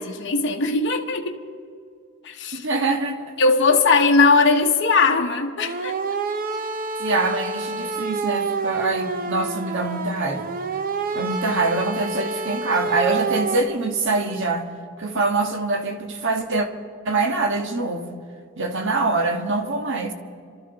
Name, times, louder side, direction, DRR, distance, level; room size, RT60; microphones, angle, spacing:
voice 1, 0.0-1.4 2.2-2.7 3.4-5.9, left 4 dB, 55° left, 2 dB, 0.9 m, -19 dB
voice 2, 2.5-3.2 7.0-10.5 11.1-14.7 15.0-16.7 17.0-18.2 18.6-20.1, right 3 dB, 60° right, 4 dB, 1.5 m, -24 dB
sound 1, 5.6-13.6, right 4 dB, 40° right, 0.8 m, -28 dB
27.0 x 12.5 x 4.0 m, 2.3 s
head